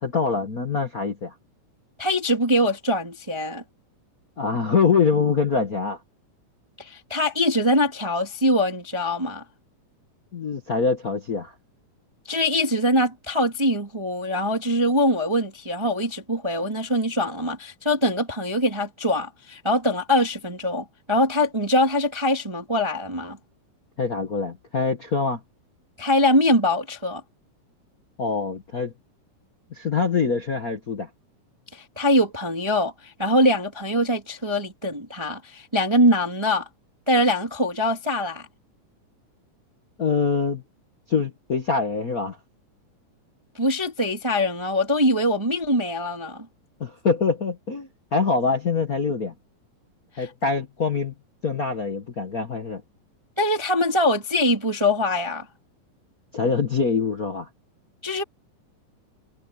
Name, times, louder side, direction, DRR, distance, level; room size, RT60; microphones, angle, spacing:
voice 1, 0.0-1.3 4.4-6.0 10.3-11.5 24.0-25.4 28.2-28.9 29.7-31.1 40.0-40.6 41.1-42.4 46.8-49.3 50.2-51.1 51.4-52.8 56.3-57.5, left 5 dB, 50° left, 1.1 m, -24 dB
voice 2, 2.0-3.6 6.8-9.4 12.3-23.4 26.0-27.2 31.7-36.7 37.1-38.5 43.5-46.4 50.2-50.3 53.4-55.4 58.0-58.2, left 1 dB, 10° right, 1.6 m, -23 dB
omnidirectional pair, 3.8 m